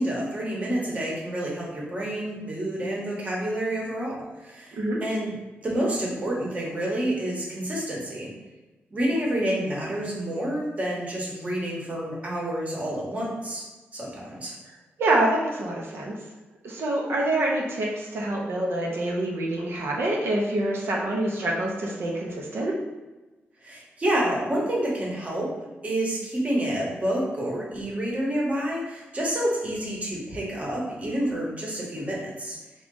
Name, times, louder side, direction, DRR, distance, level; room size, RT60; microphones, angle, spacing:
voice 1, 0.0-8.3 8.9-13.6 13.9-14.5 23.6-25.5 25.8-32.6, right 1 dB, 35° right, -3 dB, 1.1 m, -28 dB
voice 2, 15.0-16.2 16.6-22.8, right 1 dB, 70° right, -2 dB, 0.7 m, -26 dB
3.7 x 2.4 x 3.8 m, 1.2 s
wide cardioid pair, 120°, 4 cm